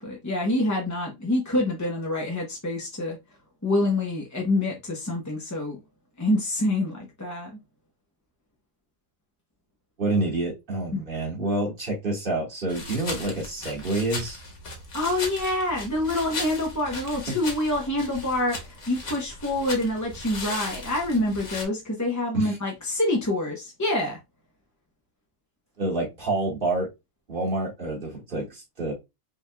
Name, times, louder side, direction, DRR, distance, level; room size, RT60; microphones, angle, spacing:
voice 1, 0.0-3.2 3.6-5.8 6.2-7.5 10.9-11.0 14.9-24.2, left 1 dB, 15° left, 0.6 m, -26 dB
voice 2, 10.0-14.4 22.3-22.6 25.8-26.9 27.3-28.9, right 2 dB, 40° right, 1.8 m, -28 dB
sound 1, 12.7-21.6, left 2 dB, 60° left, 1.5 m, -37 dB
5.4 x 3.2 x 2.2 m
omnidirectional pair, 1.4 m